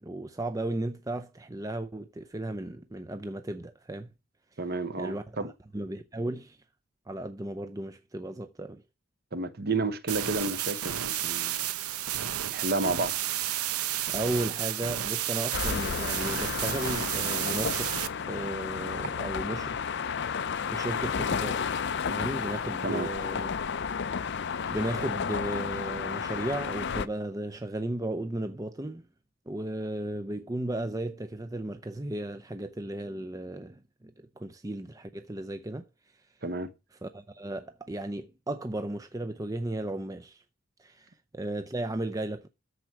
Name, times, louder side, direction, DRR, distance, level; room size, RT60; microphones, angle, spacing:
voice 1, 0.0-4.1 5.0-5.2 5.7-6.6 7.1-8.8 14.1-19.8 20.7-23.5 24.2-24.4 24.7-29.1 29.5-35.9 37.0-40.4 40.8-42.5, right 1 dB, 15° right, 0.5 m, -35 dB
voice 2, 4.6-5.5 9.3-11.7 12.5-13.2 22.8-23.1 36.4-36.7, right 3 dB, 45° right, 1.0 m, -31 dB
sound 1, 10.1-18.1, right 12 dB, 85° right, 0.8 m, -31 dB
sound 2, 15.5-27.1, left 6 dB, 50° left, 0.5 m, -32 dB
13.5 x 4.6 x 7.4 m
head